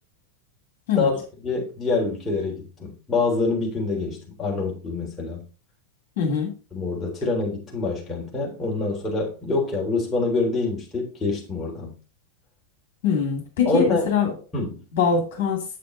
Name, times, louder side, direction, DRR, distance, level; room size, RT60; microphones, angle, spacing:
voice 1, 1.0-5.4 6.7-11.9 13.7-14.1 14.5-14.8, left 3 dB, 15° left, 3.7 m, -26 dB
voice 2, 6.2-6.5 13.0-14.3 14.9-15.6, left 6 dB, 50° left, 2.3 m, -22 dB
7.7 x 6.8 x 3.9 m
figure-of-eight pair, 90°, 0 cm